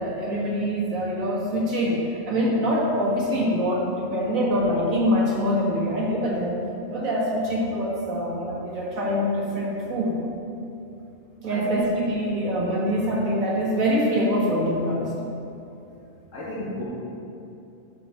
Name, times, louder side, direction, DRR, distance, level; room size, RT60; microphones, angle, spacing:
voice 1, 0.0-6.6 6.9-10.2 11.4-15.1, equal, 90° right, -3 dB, 2.0 m, -24 dB
voice 2, 11.5-11.8 16.3-16.8, equal, 75° left, -7 dB, 1.7 m, -32 dB
10.0 x 5.9 x 4.4 m, 2.7 s
omnidirectional pair, 1.4 m